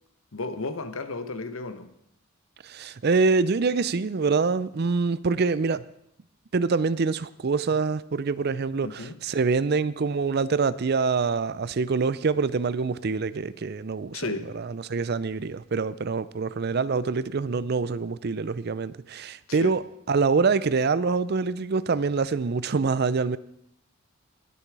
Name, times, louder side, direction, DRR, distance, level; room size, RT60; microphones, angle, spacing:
voice 1, 0.3-1.9 8.8-9.2 14.1-14.5 19.5-19.8, left 3 dB, 80° left, 1.0 m, -33 dB
voice 2, 2.6-5.8 6.5-14.2 14.5-19.8 20.1-23.4, right 4 dB, 50° right, 0.5 m, -25 dB
21.0 x 7.0 x 4.8 m
head